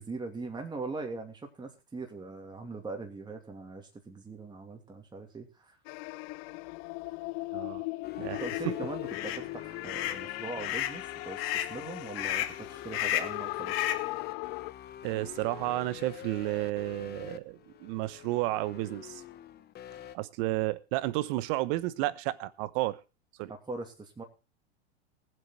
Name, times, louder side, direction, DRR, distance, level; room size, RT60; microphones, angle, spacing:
voice 1, 0.0-5.8 8.4-13.7 23.7-24.2, right 3 dB, 15° right, 2.7 m, -41 dB
sound 1, 5.9-14.7, left 24 dB, 45° left, 0.6 m, -38 dB
voice 2, 7.5-7.8 8.2-8.7 15.0-19.2 20.1-23.0 23.4-23.5, right 18 dB, 50° right, 1.1 m, -32 dB
sound 2, 8.0-20.2, left 11 dB, 30° left, 1.1 m, -46 dB
sound 3, 8.3-8.6 9.1-9.4 9.8-10.2 10.6-11.0 11.4-11.7 12.2-12.6 12.9-13.4 13.7-14.1, left 12 dB, 65° left, 1.9 m, -32 dB
18.5 x 8.0 x 4.5 m
hypercardioid pair, 100°, 33 cm